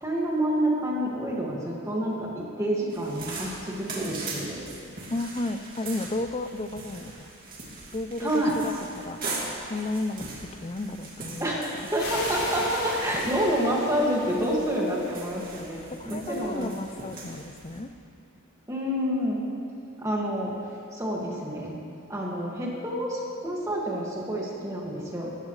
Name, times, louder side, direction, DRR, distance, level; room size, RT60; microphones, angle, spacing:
voice 1, 0.0-4.6 8.2-8.5 11.4-16.8 18.7-19.4 20.0-20.5 20.9-21.7 22.1-25.4, equal, 15° right, -4 dB, 2.1 m, -28 dB
sound 1, 2.9-17.8, right 3 dB, 40° right, 2.4 m, -40 dB
voice 2, 5.1-7.3 7.9-9.2 9.7-10.3 10.6-11.9 15.9-17.9, left 2 dB, 25° left, 9 dB, 0.5 m, -33 dB
sound 2, 11.9-15.6, left 2 dB, 65° left, 4.0 m, -37 dB
19.0 x 14.5 x 3.3 m, 2.6 s
head